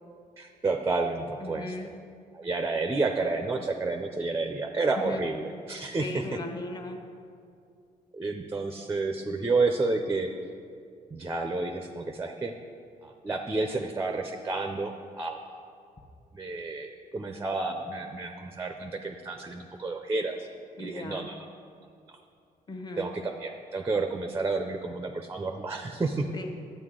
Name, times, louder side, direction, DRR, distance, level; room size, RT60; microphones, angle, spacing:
voice 1, 0.4-1.7 2.3-6.2 8.1-10.3 11.1-12.5 13.0-15.6 16.3-20.5 20.8-21.4 23.0-26.2, right 3 dB, 20° right, 5 dB, 0.5 m, -30 dB
voice 2, 1.4-1.9 4.9-5.2 6.0-7.0 20.8-21.3 22.7-23.1 26.3-26.5, left 2 dB, 25° left, 4 dB, 0.9 m, -37 dB
11.0 x 8.2 x 3.7 m, 2.4 s
cardioid pair, 125°, 15 cm